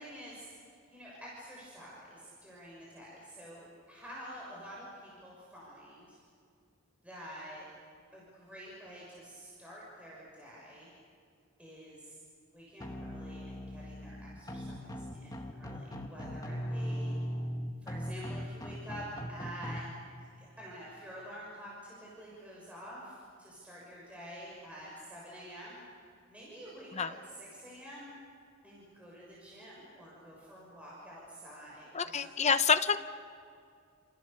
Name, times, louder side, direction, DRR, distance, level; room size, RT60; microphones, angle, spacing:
voice 1, 0.0-6.2 7.0-7.6 8.1-10.9 11.6-12.2 12.5-17.1 17.8-19.9 20.2-25.8 26.3-27.0 27.3-28.1 28.6-32.5, equal, 5° right, -6 dB, 6.4 m, -48 dB
sound 1, 12.8-19.8, equal, 20° left, 1.9 m, -39 dB
voice 2, 31.9-33.0, left 6 dB, 35° left, 9 dB, 1.0 m, -27 dB
29.5 x 28.5 x 6.9 m, 2.3 s
head